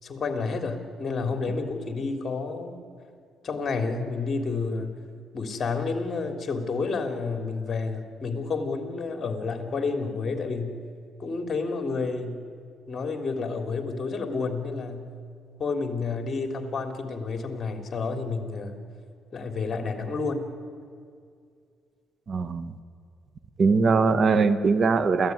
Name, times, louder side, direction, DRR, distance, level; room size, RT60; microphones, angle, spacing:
voice 1, 0.0-2.8 3.4-4.9 5.3-10.8 11.2-12.4 12.9-15.1 15.6-18.8 19.3-20.5, left 4 dB, 40° left, 5 dB, 3.3 m, -30 dB
voice 2, 22.3-22.7 23.6-25.3, right 4 dB, 50° right, 12 dB, 1.2 m, -21 dB
28.0 x 15.0 x 9.6 m, 2.3 s
cardioid pair, 90°, 0 cm